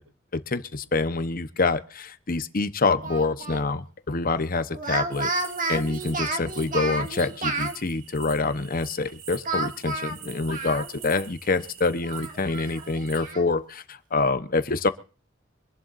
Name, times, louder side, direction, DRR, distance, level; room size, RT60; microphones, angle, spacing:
voice 1, 0.3-5.3 5.7-14.9, left 3 dB, 45° left, 12 dB, 1.0 m, -26 dB
Speech, 3.0-3.6 4.7-7.8 9.5-11.2 11.5-11.6 12.0-13.5, right 3 dB, 40° right, 2.1 m, -31 dB
sound 1, 5.1-13.3, right 8 dB, 75° right, 3.0 m, -46 dB
25.0 x 11.5 x 2.6 m, 0.37 s
head